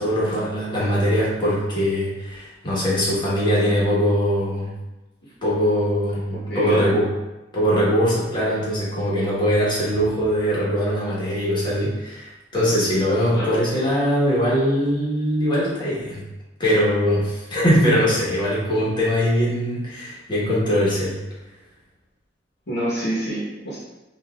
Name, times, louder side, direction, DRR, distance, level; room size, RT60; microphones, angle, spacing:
voice 1, 0.0-4.7 5.4-7.1 7.5-16.2 16.6-21.2, equal, 25° left, -7 dB, 1.3 m, -21 dB
voice 2, 6.3-6.9 13.3-13.5 22.7-23.8, right 1 dB, 60° left, -8 dB, 1.1 m, -27 dB
5.5 x 2.6 x 2.4 m, 1.1 s
head